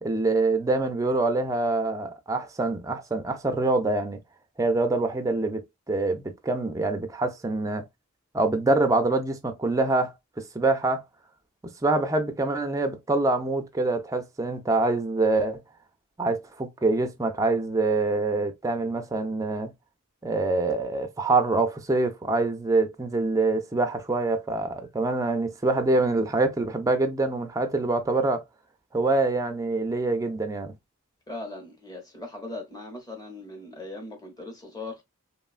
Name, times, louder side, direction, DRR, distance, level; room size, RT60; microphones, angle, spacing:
voice 1, 0.0-4.2 4.6-7.9 8.3-11.0 11.8-15.6 16.2-19.7 20.2-28.4 28.9-30.7, right 2 dB, 15° right, 0.4 m, -25 dB
voice 2, 31.3-35.0, left 2 dB, 15° left, 0.8 m, -39 dB
3.0 x 2.2 x 2.3 m
head